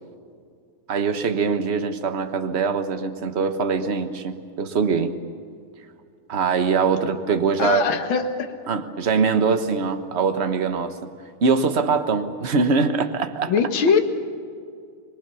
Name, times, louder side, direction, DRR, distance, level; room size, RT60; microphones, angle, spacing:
voice 1, 0.9-5.1 6.3-7.8 8.7-11.1 11.4-13.5, right 5 dB, 35° right, 8 dB, 1.3 m, -22 dB
voice 2, 7.6-8.5 13.5-14.0, left 5 dB, 65° left, 5 dB, 2.2 m, -21 dB
26.5 x 21.5 x 7.0 m, 2.3 s
omnidirectional pair, 2.4 m